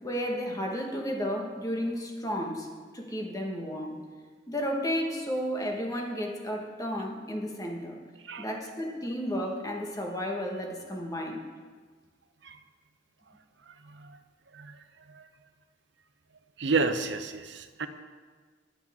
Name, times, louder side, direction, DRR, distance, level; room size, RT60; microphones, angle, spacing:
voice 1, 0.0-2.7 2.9-4.0 4.5-8.0 8.4-11.4, equal, 20° left, 1 dB, 1.5 m, -32 dB
voice 2, 16.6-17.9, right 4 dB, 70° right, 8 dB, 0.8 m, -31 dB
21.0 x 7.1 x 3.7 m, 1.5 s
head